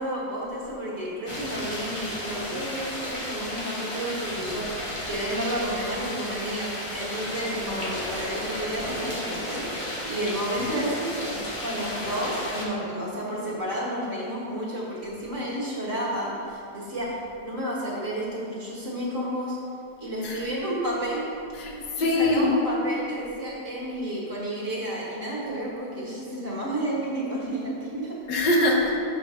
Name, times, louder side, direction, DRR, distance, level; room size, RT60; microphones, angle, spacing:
voice 1, 0.0-19.6 20.0-21.4 22.0-28.2, right 1 dB, 45° right, -6 dB, 1.8 m, -31 dB
sound 1, 1.3-12.7, left 1 dB, 25° left, 0.7 m, -33 dB
voice 2, 7.4-7.9 20.2-20.5 21.5-22.7 28.3-29.0, left 2 dB, 75° left, -1 dB, 1.6 m, -24 dB
6.2 x 4.7 x 6.2 m, 2.5 s
omnidirectional pair, 1.9 m